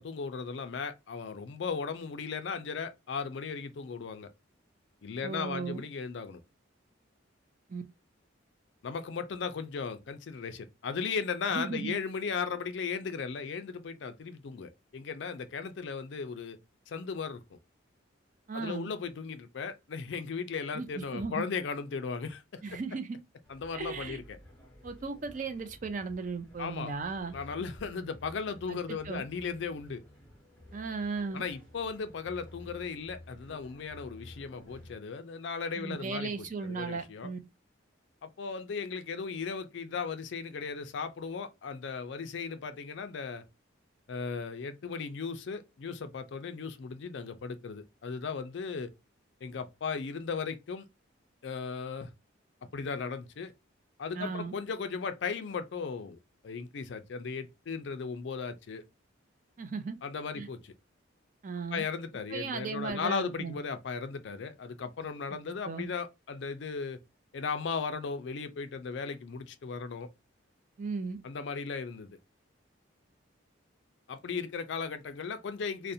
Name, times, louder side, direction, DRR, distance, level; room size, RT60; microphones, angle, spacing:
voice 1, 0.0-4.3 5.0-6.4 8.8-16.6 16.9-17.6 18.5-22.8 23.5-24.4 26.6-26.9 27.3-30.0 31.3-37.3 38.2-43.4 44.1-48.9 49.4-50.8 51.4-52.1 52.7-53.5 54.0-58.8 60.0-60.7 61.7-67.0 67.3-70.1 71.2-72.2 74.1-75.9, left 5 dB, 60° left, 0.4 m, -36 dB
voice 2, 5.2-5.8 7.7-7.8 11.5-12.0 18.5-18.9 20.7-21.4 22.6-23.2 23.7-24.2 24.8-27.3 28.7-28.8 29.0-29.2 30.7-31.4 35.8-37.4 54.1-54.5 59.6-60.0 60.3-60.5 61.4-61.8 62.3-63.6 65.6-65.9 70.8-71.2, right 4 dB, 40° right, 0.4 m, -36 dB
sound 1, 23.4-35.0, left 1 dB, 5° left, 0.7 m, -53 dB
2.5 x 2.0 x 2.6 m
head